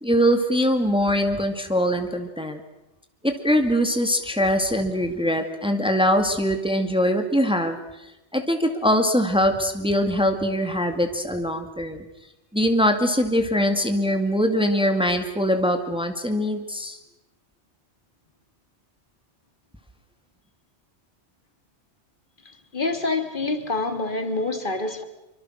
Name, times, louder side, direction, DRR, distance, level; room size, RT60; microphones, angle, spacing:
voice 1, 0.0-2.6 3.2-7.8 8.3-12.0 12.5-17.0, equal, 5° right, 6 dB, 2.0 m, -22 dB
voice 2, 22.5-25.0, left 3 dB, 45° left, 8 dB, 2.3 m, -27 dB
27.0 x 24.5 x 6.4 m, 0.96 s
omnidirectional pair, 1.2 m